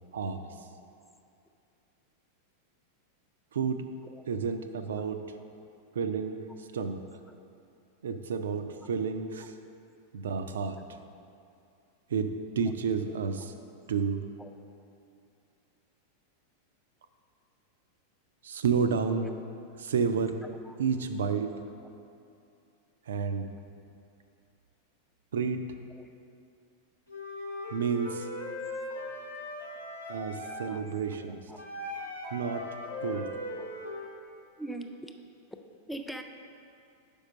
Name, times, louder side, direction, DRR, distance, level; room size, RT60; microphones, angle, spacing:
voice 1, 0.1-0.4 3.5-3.8 4.3-5.2 5.9-7.0 8.0-9.6 10.1-10.8 12.1-13.5 13.9-14.2 18.4-19.3 19.8-20.4 20.8-21.5 23.1-23.5 25.3-25.6 27.7-28.3 30.1-31.4 32.3-32.7 33.0-33.3, right 6 dB, 65° right, 8 dB, 0.4 m, -30 dB
voice 2, 20.4-20.8 21.3-21.4 25.9-26.1 30.6-31.6 32.8-33.0 33.5-33.8 34.6-35.2 35.5-35.6 35.9-36.2, right 1 dB, 5° left, 5 dB, 0.5 m, -44 dB
Wind instrument woodwind instrument, 27.1-30.7 31.6-34.1, left 1 dB, 85° left, 1.0 m, -39 dB
5.3 x 4.9 x 6.2 m, 2.5 s
figure-of-eight pair, 90°, 0 cm